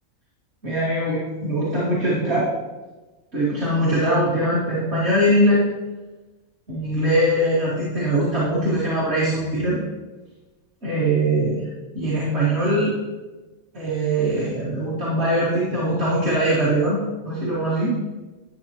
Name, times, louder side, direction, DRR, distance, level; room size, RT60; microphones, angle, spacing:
voice 1, 0.6-2.5 3.3-5.6 6.7-9.8 10.8-11.6 11.9-12.9 13.7-17.9, right 1 dB, 50° right, -8 dB, 1.9 m, -21 dB
10.5 x 6.7 x 2.9 m, 1.2 s
omnidirectional pair, 1.5 m